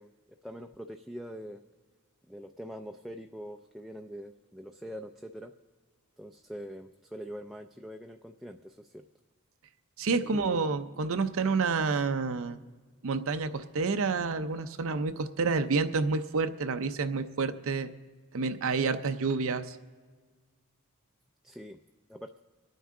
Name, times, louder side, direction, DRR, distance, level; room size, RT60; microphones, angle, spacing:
voice 1, 0.0-1.6 2.3-5.5 6.2-9.0 10.1-10.7 21.4-21.8 22.1-22.4, equal, ahead, 4 dB, 0.3 m, -44 dB
voice 2, 10.0-12.6 13.0-17.9 18.3-19.8, right 4 dB, 65° right, 9 dB, 0.6 m, -29 dB
26.0 x 9.2 x 3.7 m, 1.4 s
head